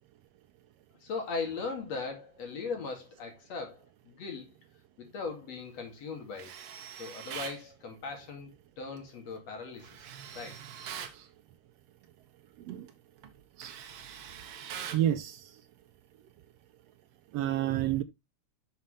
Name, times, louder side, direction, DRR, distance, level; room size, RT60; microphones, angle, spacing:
voice 1, 1.0-4.5 5.0-6.5 7.0-8.5 8.8-10.1 10.4-10.6, left 4 dB, 60° left, 3.5 m, -39 dB
Tools, 6.3-7.6 9.8-11.2 12.7-12.9 13.2-15.1, right 8 dB, 60° right, 1.7 m, -43 dB
voice 2, 14.9-15.5 17.3-18.0, right 12 dB, 80° right, 1.5 m, -29 dB
8.9 x 6.5 x 3.2 m
omnidirectional pair, 3.3 m